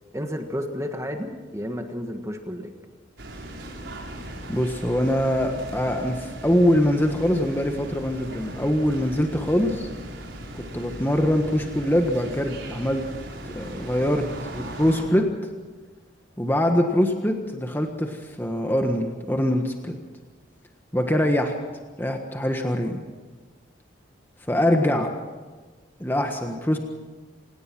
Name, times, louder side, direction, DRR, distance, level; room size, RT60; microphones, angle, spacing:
voice 1, 0.1-2.7 24.9-25.0, equal, 15° right, 4 dB, 1.5 m, -32 dB
sound 1, 3.2-15.0, right 1 dB, 70° right, 4.6 m, -38 dB
voice 2, 4.5-9.9 10.5-13.0 13.5-15.3 16.4-19.9 20.9-21.6 22.0-23.0 24.5-25.1 26.0-26.8, equal, 10° left, 4 dB, 1.4 m, -23 dB
27.0 x 17.5 x 6.1 m, 1.3 s
head